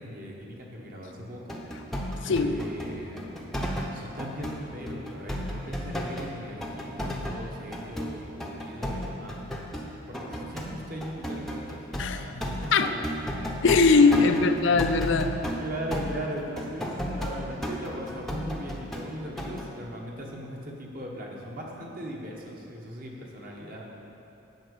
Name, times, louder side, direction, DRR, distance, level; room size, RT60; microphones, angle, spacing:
voice 1, 0.0-1.6 1.9-3.5 3.9-9.7 10.1-12.9 13.3-13.4 13.8-14.4 15.6-23.8, equal, 45° right, -1 dB, 1.4 m, -39 dB
sound 1, 1.5-6.3 6.6-19.1 19.4-19.7, equal, ahead, 0.8 m, -34 dB
voice 2, 2.2-2.6 12.0-12.2 12.7-12.9 13.6-15.6, left 4 dB, 60° left, 8 dB, 0.5 m, -21 dB
8.8 x 6.2 x 8.4 m, 2.9 s
head